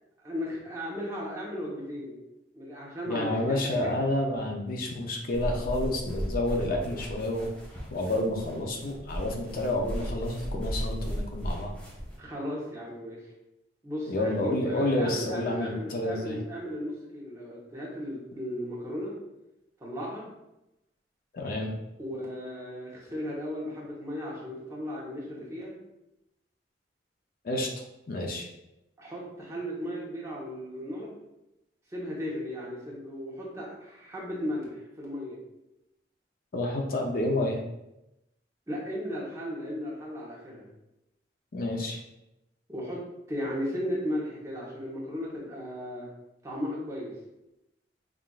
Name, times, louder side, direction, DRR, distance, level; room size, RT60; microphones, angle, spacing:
voice 1, 0.2-2.1 2.5-3.9 12.2-13.2 13.8-19.1 19.8-20.3 22.0-25.7 29.0-31.2 31.9-35.4 38.7-40.7 42.7-43.0 43.3-46.1 46.4-47.2, equal, 15° right, -5 dB, 1.0 m, -36 dB
voice 2, 3.1-7.5 7.9-11.7 14.1-16.4 21.3-21.7 27.4-27.7 28.1-28.5 36.5-37.6 41.5-42.0, left 1 dB, 50° left, 1 dB, 0.5 m, -29 dB
sound 1, 5.3-12.2, equal, 10° left, 0.7 m, -36 dB
5.6 x 2.5 x 2.4 m, 0.91 s
head